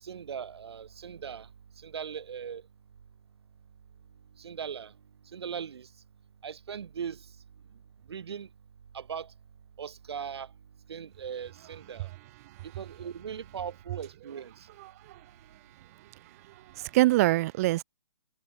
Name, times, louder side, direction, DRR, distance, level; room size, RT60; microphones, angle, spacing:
voice 1, 0.0-1.5 1.8-2.6 4.4-4.9 5.3-5.9 6.4-7.2 8.1-8.5 8.9-9.3 9.8-10.5 10.9-12.1 12.8-14.7, right 7 dB, 60° right, 2.2 m, -39 dB
voice 2, 14.8-15.2 16.8-17.8, right 18 dB, 30° right, 0.8 m, -25 dB
figure-of-eight pair, 130°, 15 cm